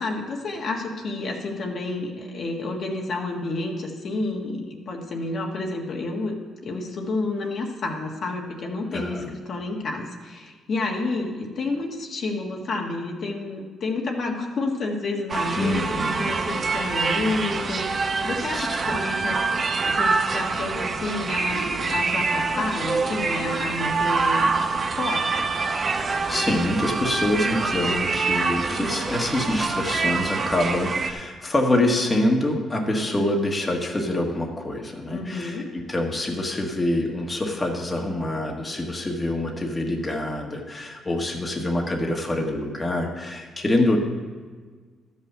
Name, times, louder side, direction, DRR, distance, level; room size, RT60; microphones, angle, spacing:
voice 1, 0.0-6.4 6.6-25.4 35.1-35.7, left 2 dB, 55° left, 0 dB, 1.6 m, -30 dB
voice 2, 8.9-9.3 15.6-16.3 18.5-19.2 26.0-44.0, left 1 dB, 20° left, 0 dB, 1.5 m, -26 dB
sound 1, 15.3-31.1, right 4 dB, 40° right, 0.8 m, -25 dB
12.5 x 5.6 x 6.7 m, 1.5 s
cardioid pair, 90°, 0 cm